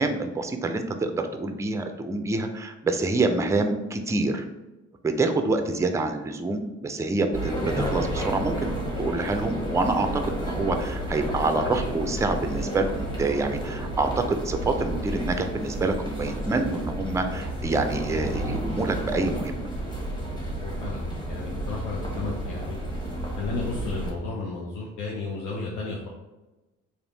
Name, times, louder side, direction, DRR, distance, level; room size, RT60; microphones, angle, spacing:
voice 1, 0.0-4.4 5.0-8.7 9.0-19.7, right 3 dB, 10° right, 6 dB, 0.4 m, -27 dB
sound 1, 7.3-24.1, right 1 dB, 15° left, 1.1 m, -31 dB
voice 2, 20.6-22.8 23.3-26.1, left 3 dB, 85° left, -3 dB, 0.7 m, -33 dB
3.4 x 2.6 x 3.9 m, 1.1 s
cardioid pair, 90°, 30 cm